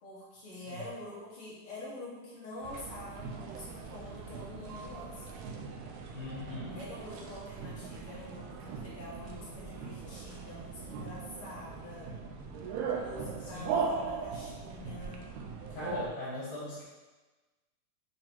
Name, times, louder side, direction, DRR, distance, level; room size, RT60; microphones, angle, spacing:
voice 1, 0.0-5.4 6.6-12.1 12.9-15.3, left 1 dB, 50° left, -6 dB, 2.0 m, -46 dB
sound 1, 2.6-16.1, right 5 dB, 80° right, 2.2 m, -39 dB
voice 2, 6.1-6.8 13.5-13.7 15.7-16.8, left 2 dB, 75° left, -11 dB, 3.5 m, -39 dB
7.8 x 3.0 x 4.7 m, 1.2 s
omnidirectional pair, 3.7 m